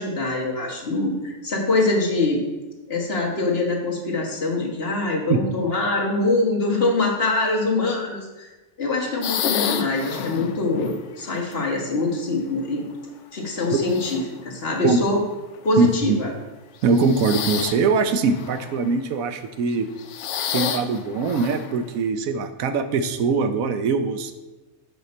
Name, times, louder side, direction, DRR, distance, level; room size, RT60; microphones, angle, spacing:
voice 1, 0.0-2.4 2.9-8.5 8.8-12.9 13.3-15.2 15.6-16.3, left 2 dB, 45° left, -2 dB, 1.6 m, -24 dB
sound 1, 9.2-11.5 12.4-13.1 13.7-14.4 15.4-15.6 16.8-17.9 18.3-18.9 19.7-21.8, left 8 dB, 65° left, 0.8 m, -30 dB
voice 2, 15.8-16.2 16.8-19.9 20.5-24.3, right 4 dB, 75° right, 9 dB, 1.0 m, -22 dB
7.9 x 5.4 x 4.3 m, 1.1 s
omnidirectional pair, 1.5 m